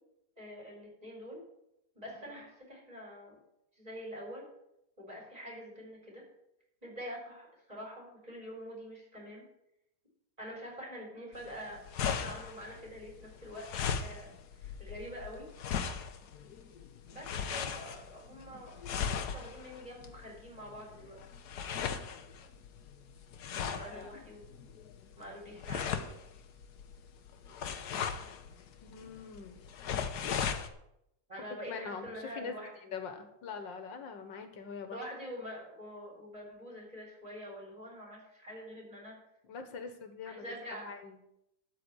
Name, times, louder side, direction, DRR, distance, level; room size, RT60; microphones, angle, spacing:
voice 1, 0.4-1.4 1.9-3.3 3.8-4.4 5.0-6.2 6.8-9.4 10.4-14.3 14.6-15.4 17.1-18.7 19.1-21.2 23.6-24.5 25.2-26.1 31.3-32.9 34.8-39.1 40.3-40.9, equal, 20° right, -1 dB, 4.2 m, -46 dB
sound 1, 11.3-30.7, left 7 dB, 65° left, 1.4 m, -38 dB
voice 2, 23.8-24.1 28.8-29.7 31.7-35.0 39.4-41.2, left 5 dB, 85° left, 7 dB, 2.0 m, -44 dB
12.5 x 4.9 x 8.3 m, 0.81 s
omnidirectional pair, 1.9 m